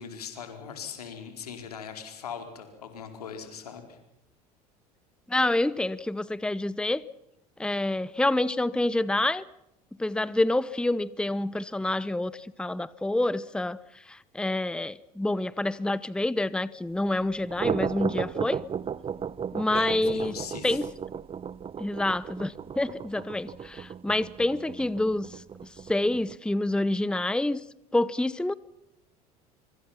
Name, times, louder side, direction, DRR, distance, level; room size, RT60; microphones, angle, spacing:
voice 1, 0.0-4.0 19.7-20.8, left 7 dB, 85° left, 6 dB, 4.4 m, -40 dB
voice 2, 5.3-7.0 7.6-9.4 10.0-13.8 14.1-18.6 19.5-20.4 20.6-20.8 21.8-25.4 25.9-27.6 27.9-28.5, left 2 dB, 5° left, 19 dB, 0.9 m, -27 dB
sound 1, 17.3-26.4, right 7 dB, 30° right, 0.8 m, -35 dB
25.0 x 25.0 x 5.8 m, 0.87 s
hypercardioid pair, 70°, 19 cm